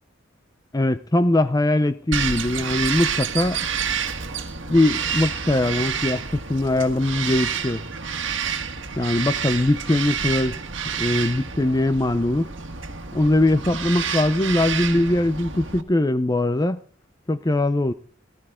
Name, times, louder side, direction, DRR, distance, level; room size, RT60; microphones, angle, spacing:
voice 1, 0.7-3.6 4.7-7.8 9.0-10.6 11.0-12.5 13.1-16.8 17.3-17.9, left 1 dB, 20° left, 0.6 m, -21 dB
Bird vocalization bird call bird song, 2.1-15.8, right 7 dB, 75° right, 1.6 m, -29 dB
18.0 x 14.5 x 3.8 m
head